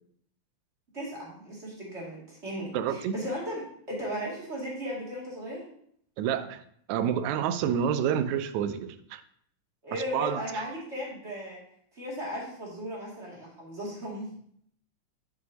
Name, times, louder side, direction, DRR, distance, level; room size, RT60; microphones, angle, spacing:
voice 1, 0.9-5.6 9.8-11.6 11.9-14.3, equal, 25° right, -5 dB, 2.3 m, -36 dB
voice 2, 2.7-3.2 6.2-6.6 6.9-9.2 9.9-10.7, right 8 dB, 80° right, 11 dB, 1.9 m, -29 dB
9.4 x 6.3 x 2.8 m, 0.65 s
omnidirectional pair, 3.4 m